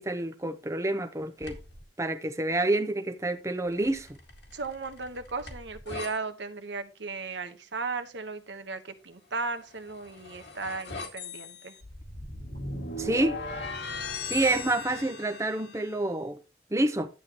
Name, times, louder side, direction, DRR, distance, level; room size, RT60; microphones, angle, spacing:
voice 1, 0.0-1.6 2.0-4.1 13.0-13.4 14.2-16.4 16.7-17.1, right 2 dB, 15° right, 0.8 m, -28 dB
sound 1, 1.4-1.8 3.7-6.1 9.6-16.0, left 3 dB, 75° left, 2.2 m, -39 dB
voice 2, 4.5-11.7, right 4 dB, 85° right, 1.2 m, -36 dB
11.0 x 8.1 x 3.0 m
head